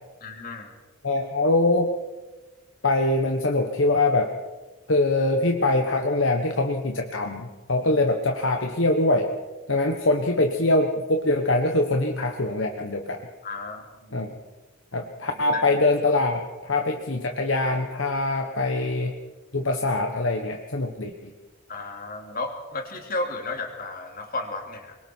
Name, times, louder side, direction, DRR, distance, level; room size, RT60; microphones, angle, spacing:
voice 1, 0.2-0.7 13.4-14.2 15.3-15.6 21.7-25.0, left 2 dB, 40° left, 3 dB, 3.1 m, -33 dB
voice 2, 1.0-1.9 2.8-4.3 4.9-9.3 9.7-13.2 14.1-14.3 14.9-19.1 19.5-21.1, left 2 dB, 60° left, 4 dB, 1.4 m, -23 dB
25.0 x 22.5 x 4.7 m, 1.2 s
head